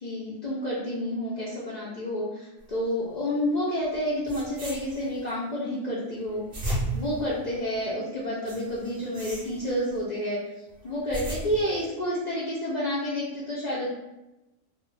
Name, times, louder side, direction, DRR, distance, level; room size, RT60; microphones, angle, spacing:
voice 1, 0.0-10.4 10.8-13.9, equal, 70° left, -7 dB, 0.4 m, -30 dB
sound 1, 3.9-4.0 4.2-5.3 6.2-7.9 8.5-10.0 10.8-11.9, right 1 dB, 40° right, 0.5 m, -35 dB
2.3 x 2.1 x 3.1 m, 0.97 s
omnidirectional pair, 1.3 m